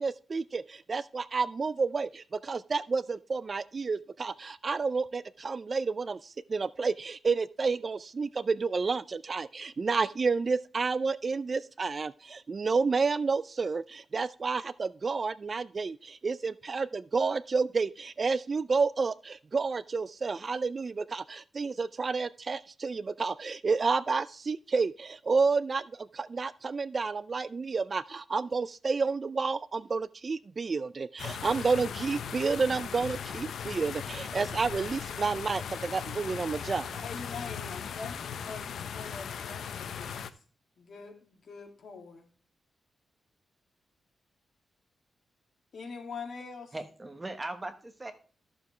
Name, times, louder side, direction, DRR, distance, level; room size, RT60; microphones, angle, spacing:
voice 1, 0.0-37.0, right 4 dB, 35° right, 16 dB, 0.3 m, -30 dB
sound 1, 31.2-40.3, left 7 dB, 85° left, 0.7 m, -38 dB
voice 2, 37.0-40.3 40.8-42.3 45.7-46.7, left 4 dB, 60° left, 3 dB, 2.2 m, -43 dB
voice 3, 46.7-48.1, right 2 dB, 20° right, 7 dB, 1.2 m, -39 dB
13.5 x 7.0 x 3.2 m, 0.39 s
wide cardioid pair, 140°, 0 cm